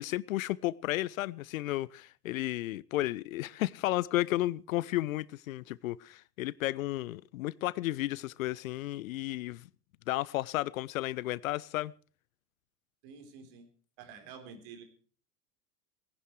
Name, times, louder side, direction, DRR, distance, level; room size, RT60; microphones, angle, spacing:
voice 1, 0.0-9.7 10.1-11.9, left 16 dB, 60° left, 0.6 m, -33 dB
voice 2, 13.0-13.7 14.0-14.8, right 6 dB, 50° right, 3.9 m, -49 dB
18.5 x 11.0 x 4.6 m
figure-of-eight pair, 75°, 48 cm